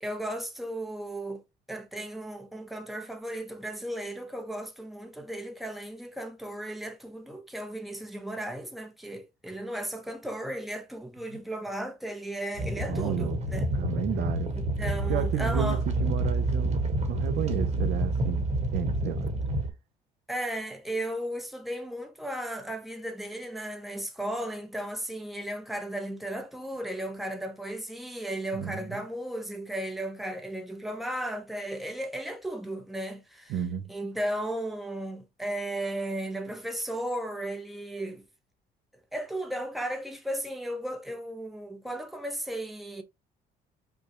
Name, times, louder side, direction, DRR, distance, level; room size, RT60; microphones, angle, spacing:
voice 1, 0.0-1.4 1.7-13.7 14.5-15.8 20.3-33.5 33.9-38.2 39.1-43.0, right 1 dB, ahead, 0.8 m, -35 dB
sound 1, 12.5-19.7, right 2 dB, 40° right, 1.3 m, -28 dB
voice 2, 12.8-13.4 13.7-18.5 18.7-19.3 28.5-29.0 33.5-33.9, right 10 dB, 70° right, 0.7 m, -33 dB
5.2 x 2.3 x 2.9 m
cardioid pair, 110°, 17 cm